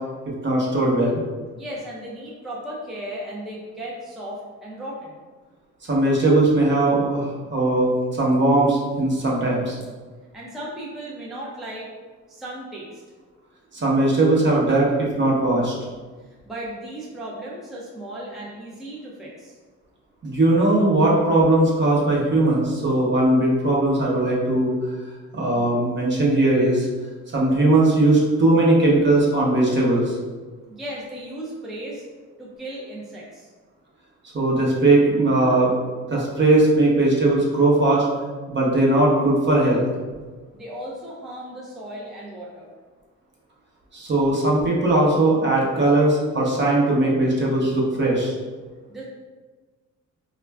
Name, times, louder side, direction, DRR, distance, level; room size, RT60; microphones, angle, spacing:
voice 1, 0.4-1.2 5.9-9.8 13.7-15.7 20.2-24.7 25.3-26.9 27.3-30.2 34.3-35.7 36.1-38.1 38.5-39.9 43.9-48.3, right 2 dB, 40° right, -4 dB, 0.8 m, -19 dB
voice 2, 1.5-5.2 10.3-11.9 12.3-13.0 16.4-19.6 30.7-32.0 32.4-33.5 40.5-42.7 48.9-49.0, right 1 dB, ahead, -5 dB, 0.5 m, -36 dB
2.3 x 2.2 x 3.3 m, 1.4 s
cardioid pair, 90°, 30 cm